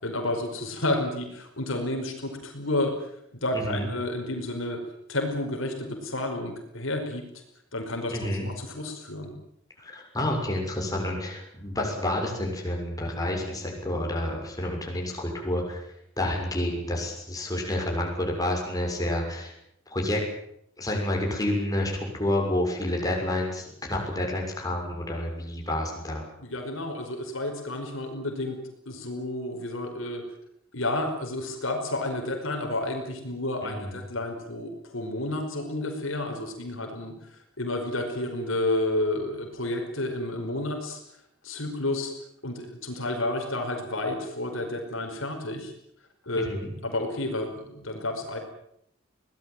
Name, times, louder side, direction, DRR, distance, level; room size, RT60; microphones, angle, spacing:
voice 1, 0.0-2.9 3.4-4.8 5.1-7.2 7.7-9.3 26.4-28.6 28.9-30.2 30.7-41.0 41.4-42.1 42.4-45.7 46.3-48.4, left 1 dB, 70° left, 3 dB, 5.4 m, -31 dB
voice 2, 3.5-3.9 8.1-8.4 9.8-15.8 16.2-19.5 19.9-20.2 20.8-26.2 33.6-34.0 46.3-46.7, left 1 dB, 20° left, 0 dB, 6.8 m, -29 dB
23.0 x 19.0 x 9.3 m, 0.74 s
head